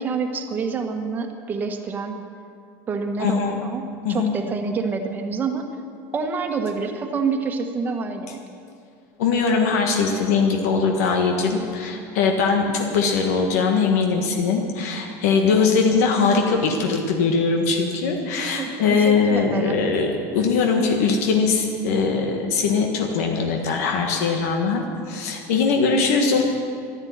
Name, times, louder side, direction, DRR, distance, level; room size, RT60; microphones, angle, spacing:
voice 1, 0.0-2.2 2.9-5.6 6.1-8.4 18.4-19.8, right 4 dB, 20° right, 5 dB, 1.3 m, -27 dB
voice 2, 3.2-3.6 4.0-4.4 9.2-26.4, left 5 dB, 90° left, 2 dB, 1.6 m, -21 dB
12.5 x 11.5 x 9.4 m, 2.4 s
cardioid pair, 160°, 8 cm